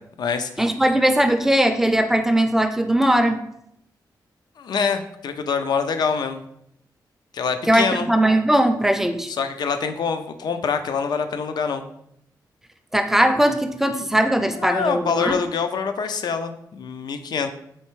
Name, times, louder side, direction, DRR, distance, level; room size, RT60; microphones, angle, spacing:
voice 1, 0.0-0.6 4.6-6.4 7.3-8.1 9.3-11.9 14.4-17.5, left 6 dB, 70° left, 8 dB, 0.4 m, -25 dB
voice 2, 0.6-3.4 7.7-9.3 12.9-15.4, right 1 dB, 5° right, 6 dB, 0.4 m, -19 dB
4.3 x 3.2 x 3.1 m, 0.75 s
cardioid pair, 100°, 7 cm